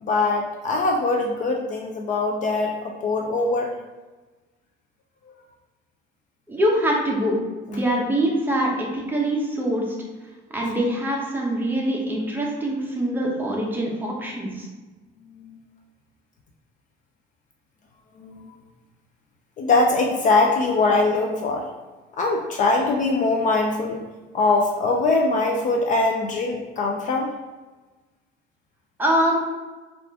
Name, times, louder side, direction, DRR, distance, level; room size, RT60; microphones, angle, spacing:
voice 1, 0.0-3.7 15.4-15.6 18.2-18.5 19.6-21.7 22.1-24.0 24.3-27.3, left 3 dB, 40° left, 1 dB, 0.4 m, -22 dB
voice 2, 6.5-7.4 7.7-9.9 10.5-14.7 29.0-29.4, right 1 dB, 10° right, -2 dB, 0.7 m, -24 dB
4.7 x 2.5 x 3.5 m, 1.2 s
cardioid pair, 165°, 20 cm